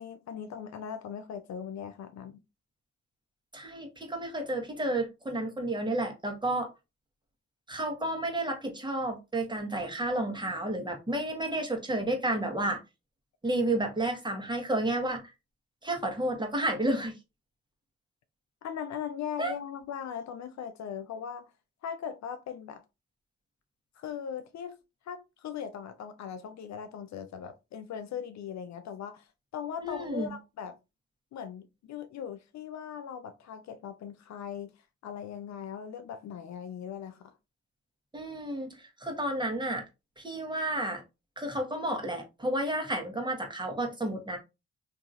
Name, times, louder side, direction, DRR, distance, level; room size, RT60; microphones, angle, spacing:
voice 1, 0.0-2.4 18.6-21.5 21.8-22.8 24.0-24.8 25.1-29.3 29.5-30.8 31.3-34.8 35.0-37.3, left 8 dB, 65° left, 0.5 m, -39 dB
voice 2, 3.5-6.7 7.7-12.8 13.4-15.2 15.8-17.1 19.4-19.5 29.8-30.3 38.1-39.8 40.2-41.0 41.4-44.4, right 1 dB, 15° right, 1.2 m, -31 dB
2.8 x 2.6 x 2.6 m
supercardioid pair, 50°, 31 cm